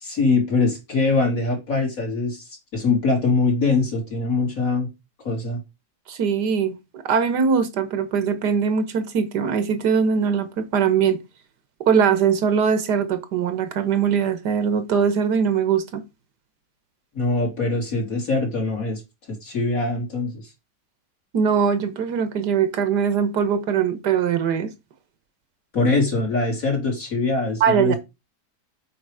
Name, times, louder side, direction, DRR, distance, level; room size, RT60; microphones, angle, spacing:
voice 1, 0.0-4.9 5.2-5.6 17.1-19.0 19.3-20.5 25.7-28.0, left 3 dB, 55° left, 3.4 m, -23 dB
voice 2, 6.1-11.2 11.9-16.0 21.3-24.7 27.6-27.9, right 7 dB, 85° right, 1.8 m, -21 dB
7.8 x 5.1 x 4.9 m
omnidirectional pair, 1.7 m